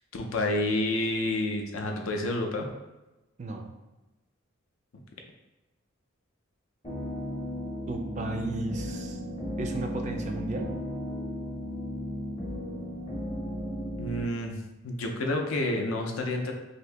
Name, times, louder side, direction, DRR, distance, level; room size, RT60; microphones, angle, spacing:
voice 1, 0.1-2.7 14.0-14.6 14.8-16.5, left 1 dB, 70° left, 2 dB, 0.5 m, -29 dB
voice 2, 3.4-3.7 7.9-9.2 9.6-10.7, right 2 dB, 35° right, 4 dB, 0.3 m, -34 dB
sound 1, 6.8-14.2, equal, 25° left, 0.7 m, -35 dB
2.8 x 2.6 x 3.3 m, 1.0 s
head